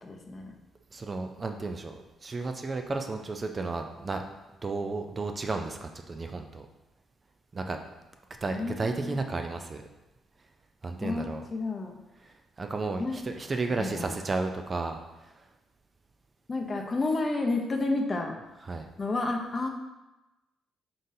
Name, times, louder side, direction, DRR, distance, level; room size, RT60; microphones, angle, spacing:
voice 1, 0.0-0.6 8.5-9.2 11.0-12.0 13.0-13.2 13.7-14.1 16.5-18.4 19.0-19.7, left 3 dB, 35° left, 2 dB, 0.6 m, -31 dB
voice 2, 0.9-4.2 4.6-6.7 7.5-7.8 8.4-9.8 10.8-11.4 12.6-15.0 18.6-18.9, right 3 dB, 30° right, 5 dB, 0.3 m, -33 dB
3.9 x 3.8 x 2.6 m, 1.0 s
cardioid pair, 90°, 0 cm